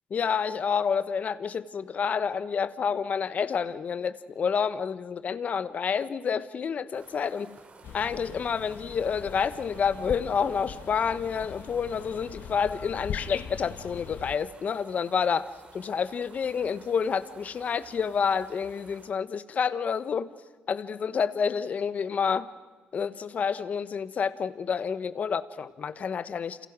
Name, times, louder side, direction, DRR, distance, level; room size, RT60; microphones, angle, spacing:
voice 1, 0.1-7.5 7.9-20.3 20.7-22.5 22.9-26.7, left 6 dB, 50° left, 14 dB, 1.2 m, -29 dB
sound 1, 6.9-19.1, right 4 dB, 40° right, 3.2 m, -53 dB
sound 2, 7.8-14.4, left 8 dB, 70° left, 1.3 m, -41 dB
29.0 x 28.5 x 6.2 m, 1.3 s
cardioid pair, 105°, 3 cm